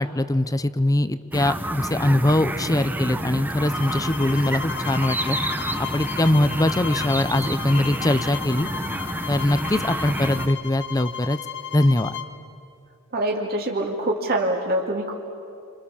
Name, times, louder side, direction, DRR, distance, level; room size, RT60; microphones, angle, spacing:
voice 1, 0.0-5.4 5.8-8.7 9.3-11.4 11.7-12.2, left 1 dB, 15° left, 14 dB, 0.7 m, -22 dB
sound 1, 1.3-10.5, right 1 dB, 10° right, 1.0 m, -29 dB
sound 2, 3.7-12.3, left 9 dB, 55° left, 1.5 m, -34 dB
voice 2, 13.1-15.1, right 1 dB, 45° right, -1 dB, 2.5 m, -24 dB
29.5 x 26.5 x 7.3 m, 2.5 s
head